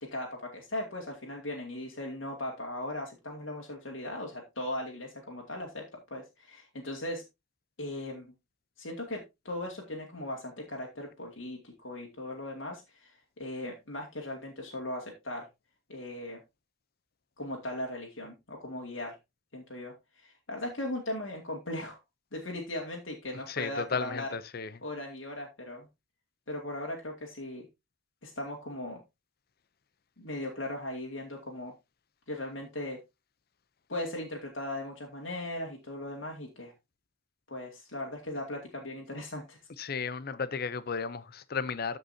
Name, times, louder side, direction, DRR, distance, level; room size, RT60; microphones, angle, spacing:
voice 1, 0.0-7.2 7.8-8.3 8.8-15.5 15.9-16.4 17.4-19.2 19.5-22.0 22.3-24.3 24.8-25.9 26.5-27.7 28.2-29.0 30.2-31.7 32.3-33.0 33.9-36.7 37.5-39.6, left 1 dB, 75° left, 2.3 m, -38 dB
voice 2, 23.5-24.8 39.8-42.0, left 5 dB, 50° left, 0.6 m, -34 dB
14.0 x 5.4 x 2.8 m
head